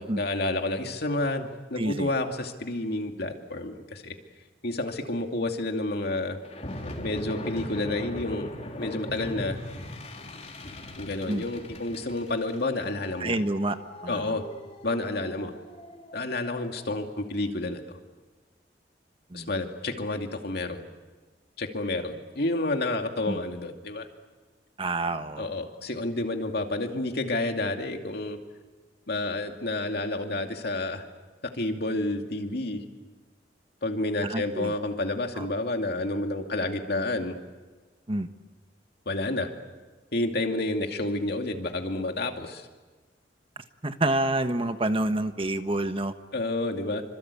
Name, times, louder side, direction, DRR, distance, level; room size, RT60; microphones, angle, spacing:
voice 1, 0.0-4.1 4.6-6.4 7.0-9.6 11.0-13.4 14.1-14.4 14.8-15.5 16.1-18.0 19.3-20.9 21.6-24.1 25.4-28.4 29.1-31.0 31.5-32.8 33.8-37.4 39.1-39.5 40.1-42.7 46.3-47.0, left 2 dB, 65° left, 4 dB, 2.4 m, -30 dB
voice 2, 1.8-2.1 11.3-11.4 13.2-13.8 14.0-14.4 19.3-19.5 23.3-23.4 24.8-25.5 34.2-34.7 35.3-35.5 38.1-38.3 43.8-46.1, right 2 dB, 30° right, 9 dB, 1.2 m, -28 dB
sound 1, 6.4-17.0, left 1 dB, 40° left, 3.5 m, -40 dB
27.0 x 25.5 x 8.4 m, 1.3 s
head